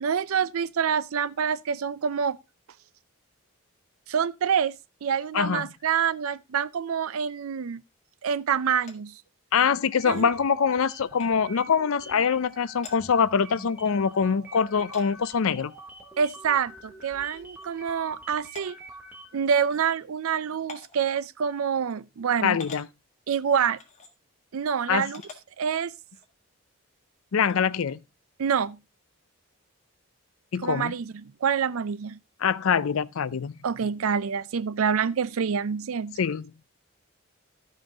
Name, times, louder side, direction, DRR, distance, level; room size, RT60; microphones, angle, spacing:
voice 1, 0.0-2.4 4.1-4.7 5.0-7.8 8.2-9.2 10.0-10.3 16.2-18.8 19.3-22.6 23.3-23.8 24.5-25.2 25.6-25.9 28.4-28.8 30.6-32.2 33.6-36.2, right 7 dB, 75° right, 0.4 m, -26 dB
voice 2, 5.3-5.7 9.5-15.7 22.4-22.9 24.9-25.1 27.3-28.0 30.5-30.9 32.4-33.5 36.2-36.5, left 6 dB, 70° left, 0.5 m, -24 dB
sound 1, 8.8-9.0 10.0-10.3 11.2-11.3 12.5-12.6 12.8-13.0 13.8-13.9 14.9-15.1 16.3-16.4 16.8-16.9 17.6-17.7 18.5-18.7 19.7-19.8 20.7-21.0 21.9-22.0 22.6-22.9 23.8-24.1 25.1-25.4 26.1-26.3 27.5-27.7, left 4 dB, 30° left, 1.5 m, -45 dB
sound 2, 9.9-19.5, right 1 dB, 10° right, 1.3 m, -46 dB
13.0 x 5.6 x 3.8 m
head